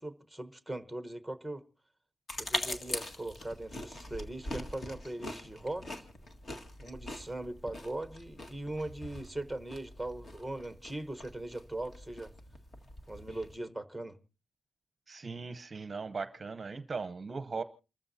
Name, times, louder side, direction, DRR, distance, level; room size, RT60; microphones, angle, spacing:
voice 1, 0.0-1.6 2.4-5.9 6.8-12.3 13.1-14.2, right 1 dB, ahead, 1.1 m, -40 dB
sound 1, 2.3-13.6, left 2 dB, 40° left, 1.8 m, -42 dB
voice 2, 15.1-17.6, right 4 dB, 30° right, 0.8 m, -38 dB
28.5 x 14.0 x 2.8 m
wide cardioid pair, 125°, 0 cm